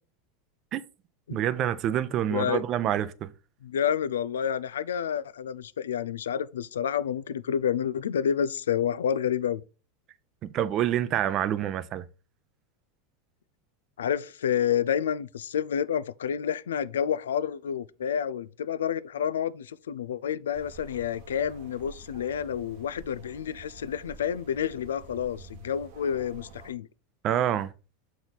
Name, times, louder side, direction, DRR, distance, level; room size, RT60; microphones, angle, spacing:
voice 1, 1.3-3.3 10.5-12.0 27.2-27.7, right 11 dB, 45° right, 0.7 m, -27 dB
voice 2, 2.3-2.6 3.6-9.6 14.0-26.9, left 8 dB, 90° left, 0.4 m, -29 dB
sound 1, 20.5-26.7, right 3 dB, 65° right, 1.3 m, -49 dB
6.6 x 4.5 x 4.0 m
hypercardioid pair, 100°, 0 cm